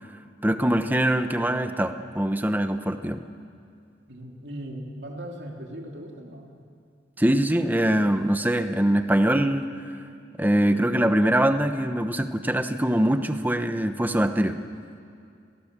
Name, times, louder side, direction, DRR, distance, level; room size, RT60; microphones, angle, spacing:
voice 1, 0.4-3.3 7.2-9.7 10.4-14.6, right 1 dB, 10° right, 8 dB, 1.0 m, -23 dB
voice 2, 4.1-6.6, right 1 dB, 65° right, 0 dB, 2.9 m, -38 dB
30.0 x 19.0 x 7.5 m, 2.4 s
head